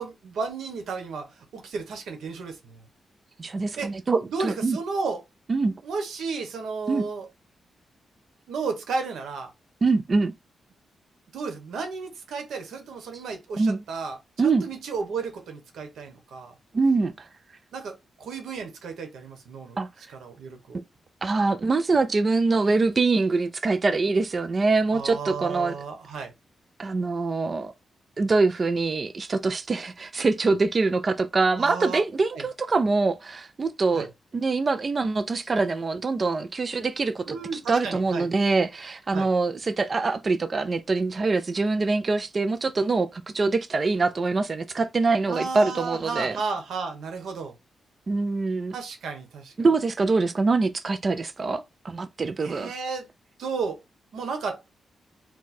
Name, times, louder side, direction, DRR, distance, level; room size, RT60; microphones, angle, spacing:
voice 1, 0.0-2.8 3.8-3.9 4.3-5.2 5.8-7.3 8.5-9.5 11.3-16.5 17.7-19.8 20.2-20.8 24.9-26.3 31.5-32.0 32.3-32.4 33.9-34.1 37.2-38.3 39.1-39.3 45.3-47.5 48.7-49.5 52.4-53.1 53.4-53.8 54.1-54.6, right 4 dB, 90° right, 1.1 m, -33 dB
voice 2, 3.4-4.8 5.5-5.8 6.9-7.1 9.8-10.3 13.6-13.8 14.4-14.7 16.7-17.3 19.8-19.9 20.7-20.8 21.2-25.7 26.8-27.7 28.2-46.4 48.1-48.7 49.6-52.7, right 3 dB, 30° right, 0.4 m, -24 dB
4.6 x 2.2 x 4.2 m
wide cardioid pair, 155°, 0 cm